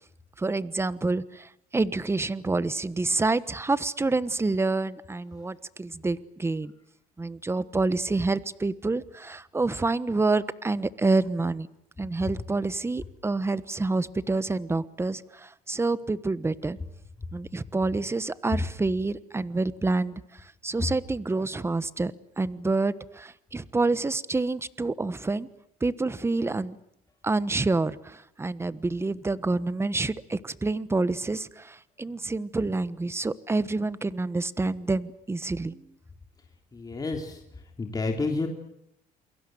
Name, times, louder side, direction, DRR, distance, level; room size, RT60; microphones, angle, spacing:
voice 1, 0.4-6.7 7.2-11.7 12.0-16.8 17.3-20.2 20.6-25.5 25.8-26.8 27.2-35.8, right 3 dB, 15° right, 16 dB, 1.2 m, -28 dB
voice 2, 36.7-37.4 37.8-38.5, left 3 dB, 20° left, 2 dB, 3.4 m, -29 dB
28.5 x 22.5 x 7.9 m, 0.76 s
cardioid pair, 110°, 17 cm